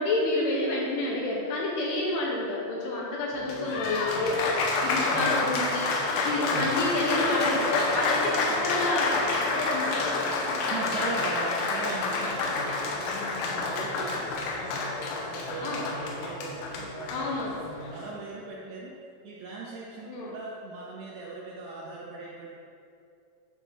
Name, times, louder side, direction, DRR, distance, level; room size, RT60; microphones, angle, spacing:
voice 1, 0.0-4.5 4.8-5.9 6.2-10.2 15.6-15.9 17.1-17.6 20.1-20.3, left 2 dB, 75° left, -3 dB, 2.7 m, -29 dB
Applause, 3.3-18.1, left 3 dB, 90° left, 3.6 m, -29 dB
voice 2, 10.7-15.0 15.3-18.9 19.2-22.5, right 3 dB, 80° right, -4 dB, 2.5 m, -39 dB
11.0 x 3.6 x 6.2 m, 2.6 s
omnidirectional pair, 5.6 m